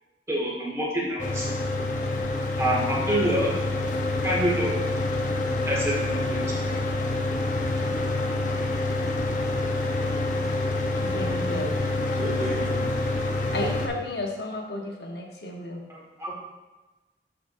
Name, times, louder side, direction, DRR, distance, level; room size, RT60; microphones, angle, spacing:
voice 1, 0.3-1.5 2.6-3.5 4.2-4.7 5.7-6.8 15.9-16.3, equal, 15° right, -5 dB, 1.8 m, -27 dB
Mechanical fan, 1.2-13.9, left 2 dB, 45° left, 0.8 m, -27 dB
voice 2, 11.0-11.7 13.5-15.8, left 1 dB, 60° left, 0 dB, 1.1 m, -32 dB
voice 3, 12.2-13.0, right 1 dB, 60° right, -5 dB, 2.5 m, -34 dB
12.5 x 5.0 x 2.7 m, 1.2 s
head